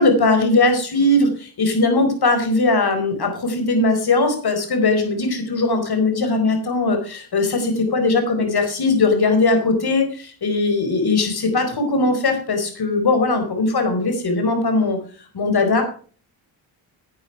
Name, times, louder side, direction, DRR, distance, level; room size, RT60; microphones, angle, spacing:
voice 1, 0.0-15.0 15.3-15.8, left 3 dB, 55° left, 6 dB, 4.5 m, -19 dB
11.0 x 8.9 x 4.8 m, 0.42 s
cardioid pair, 75°, 47 cm